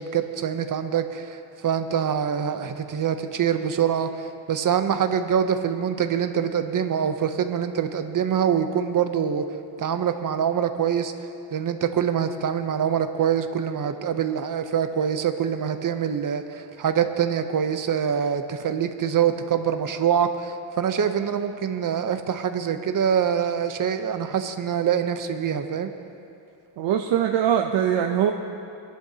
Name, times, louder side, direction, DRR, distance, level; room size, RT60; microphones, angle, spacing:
voice 1, 0.0-9.4 9.8-11.1 11.5-25.9, right 8 dB, 45° right, 8 dB, 0.7 m, -25 dB
voice 2, 26.8-28.3, right 9 dB, 80° right, 3 dB, 0.7 m, -22 dB
22.5 x 11.0 x 2.8 m, 2.6 s
wide cardioid pair, 135°, 44 cm